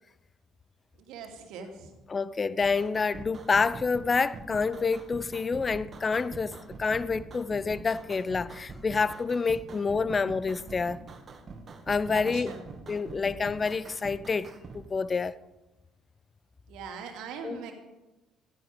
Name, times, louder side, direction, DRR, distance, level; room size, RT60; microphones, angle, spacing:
voice 1, 1.0-1.9 12.1-12.6 16.7-17.7, right 6 dB, 60° right, 2.6 m, -41 dB
voice 2, 2.1-11.0 11.9-12.5 12.9-15.4 17.4-17.6, left 4 dB, 30° left, 0.7 m, -28 dB
sound 1, 2.6-14.8, right 3 dB, 35° right, 2.2 m, -45 dB
16.0 x 15.5 x 5.1 m
figure-of-eight pair, 50°, 0 cm